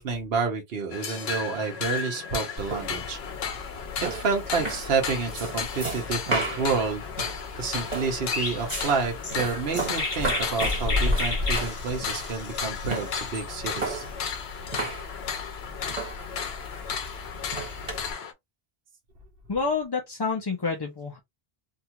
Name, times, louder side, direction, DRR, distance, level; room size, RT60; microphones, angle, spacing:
voice 1, 0.0-3.2 4.0-7.0 7.6-14.0, right 4 dB, 70° right, 1.1 m, -29 dB
sound 1, 0.9-18.3, left 6 dB, 80° left, 0.9 m, -35 dB
sound 2, 2.6-18.1, equal, 40° right, 1.7 m, -33 dB
Chirp tweet, 8.3-13.4, left 3 dB, 50° left, 1.2 m, -32 dB
voice 2, 19.5-21.2, left 4 dB, 35° left, 0.5 m, -28 dB
2.8 x 2.4 x 2.8 m
omnidirectional pair, 1.1 m